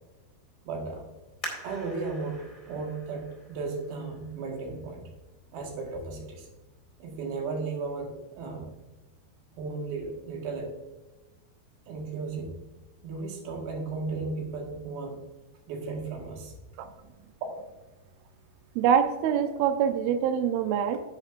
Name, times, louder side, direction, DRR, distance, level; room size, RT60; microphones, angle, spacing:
voice 1, 0.6-1.1 1.6-5.0 5.5-6.5 7.0-8.7 9.5-10.7 11.9-12.5 13.0-15.2 15.7-16.6 17.5-17.6, right 4 dB, 65° right, 1 dB, 3.4 m, -35 dB
sound 1, 1.4-4.8 5.4-5.5 6.1-6.5 6.9-7.0, equal, 15° left, 1.8 m, -44 dB
voice 2, 18.8-21.0, right 8 dB, 80° right, 7 dB, 2.2 m, -25 dB
10.5 x 9.7 x 2.5 m, 1.1 s
omnidirectional pair, 5.0 m